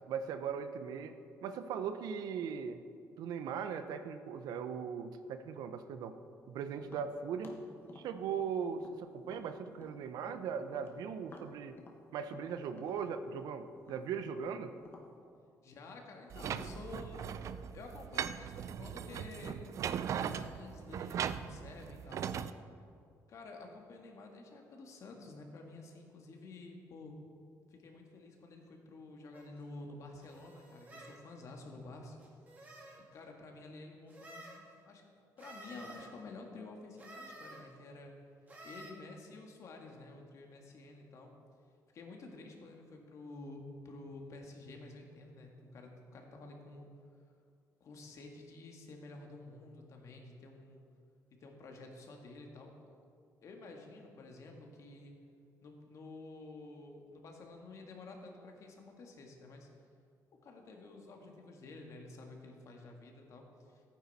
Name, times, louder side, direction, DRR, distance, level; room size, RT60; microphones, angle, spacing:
voice 1, 0.1-1.1 1.4-2.8 3.2-6.1 6.5-7.6 7.9-11.8 12.1-14.7, right 7 dB, 80° right, 9 dB, 0.7 m, -39 dB
Tap, 6.8-10.4 10.7-15.1, left 3 dB, 35° left, 1.3 m, -55 dB
voice 2, 15.6-19.6 20.3-22.3 23.3-27.2 27.7-32.3 33.0-35.1 35.4-38.1 38.6-41.3 41.9-46.9 47.8-50.8 51.4-52.7 53.4-55.1 55.6-59.7 60.3-63.8, left 2 dB, 50° left, 2 dB, 1.7 m, -51 dB
sound 1, 16.3-22.5, right 8 dB, 50° right, 0.4 m, -39 dB
sound 2, 29.3-29.5 30.2-31.2 32.2-33.0 34.1-34.6 35.4-36.1 37.0-37.6 38.5-38.9, right 1 dB, 25° right, 2.3 m, -52 dB
14.5 x 9.3 x 4.1 m, 2.3 s
cardioid pair, 140°, 7 cm